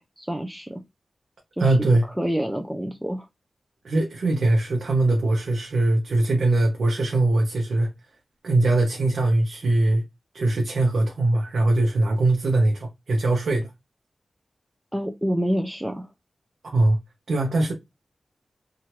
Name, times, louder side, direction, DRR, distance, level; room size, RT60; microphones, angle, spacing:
voice 1, 0.2-0.8 1.6-1.9 2.2-3.3 14.9-16.1, equal, 5° right, 0.4 m, -27 dB
voice 2, 1.6-2.0 3.8-7.9 8.4-10.0 10.3-13.7 16.6-17.0 17.3-17.7, right 2 dB, 85° right, 0.6 m, -21 dB
2.8 x 2.3 x 2.9 m
wide cardioid pair, 105°, 0 cm